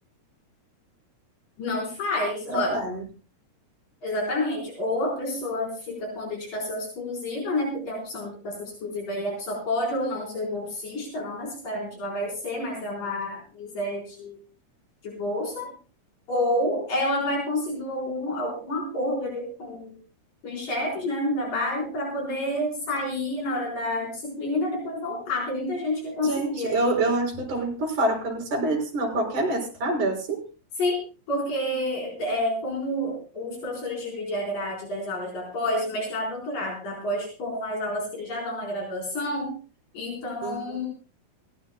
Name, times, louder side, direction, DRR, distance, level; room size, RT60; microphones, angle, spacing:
voice 1, 1.6-2.8 4.0-14.4 15.0-15.7 16.3-20.0 20.4-26.7 30.8-31.0 31.3-39.5 39.9-40.9, left 1 dB, 80° left, -1 dB, 5.9 m, -29 dB
voice 2, 2.5-3.0 26.2-30.4 40.4-40.8, right 2 dB, 70° right, 0 dB, 5.8 m, -26 dB
21.0 x 18.0 x 2.2 m, 0.34 s
omnidirectional pair, 3.8 m